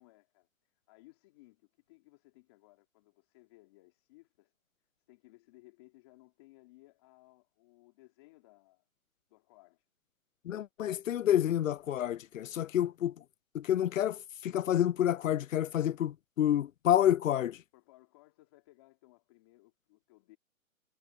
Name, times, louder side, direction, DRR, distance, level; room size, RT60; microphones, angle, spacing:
voice 1, 0.0-4.5 5.1-8.9 9.3-9.9 17.7-20.4, left 21 dB, 20° left, 3.9 m, -61 dB
voice 2, 10.5-13.1 13.5-17.6, left 11 dB, 65° left, 0.5 m, -29 dB
hypercardioid pair, 175°, 42 cm